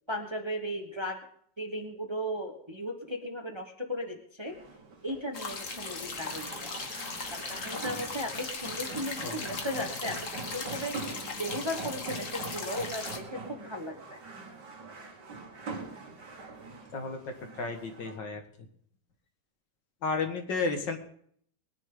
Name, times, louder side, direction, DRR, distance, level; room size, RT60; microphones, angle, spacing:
voice 1, 0.1-1.2 1.6-4.6 5.0-6.8 7.3-11.0 11.4-14.2, equal, 20° right, 3 dB, 1.1 m, -36 dB
sound 1, 4.5-18.2, right 3 dB, 65° right, 2.4 m, -43 dB
sound 2, 5.3-13.2, left 4 dB, 45° left, 1.8 m, -38 dB
voice 2, 16.9-18.4 20.0-21.0, left 4 dB, 75° left, 5 dB, 2.3 m, -33 dB
21.5 x 10.0 x 3.8 m, 0.63 s
omnidirectional pair, 2.0 m